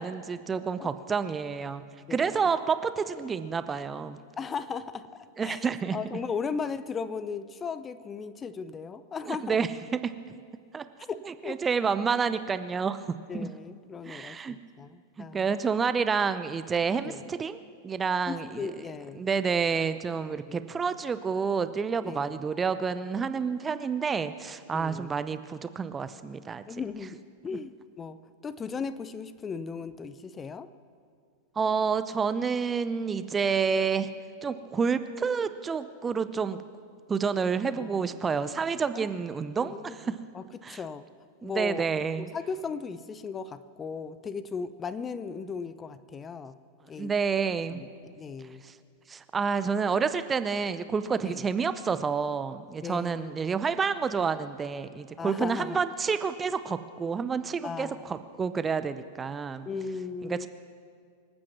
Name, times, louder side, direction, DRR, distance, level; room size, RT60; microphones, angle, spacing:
voice 1, 0.0-1.8 2.1-4.2 5.4-6.0 9.3-10.0 10.7-10.8 11.3-13.5 14.1-14.6 15.3-17.6 17.8-18.7 19.2-26.6 31.6-34.1 34.4-36.6 37.1-40.2 40.6-40.8 41.4-42.3 47.0-47.8 48.6-48.7 49.1-59.7 60.2-60.5, right 5 dB, 20° right, 12 dB, 0.6 m, -29 dB
voice 2, 2.1-2.5 4.4-5.6 5.9-9.6 11.0-11.6 13.3-15.5 17.0-17.2 18.3-19.2 20.5-20.6 22.0-22.3 24.7-25.1 26.7-28.2 28.4-30.7 37.7-38.1 38.9-39.1 39.6-41.1 41.4-41.9 42.2-46.6 46.9-47.1 47.7-48.6 51.2-51.5 52.8-53.3 55.2-55.8 57.6-58.1 59.7-60.5, left 5 dB, 20° left, 14 dB, 0.6 m, -37 dB
25.5 x 8.9 x 6.1 m, 2.2 s
figure-of-eight pair, 90°, 0 cm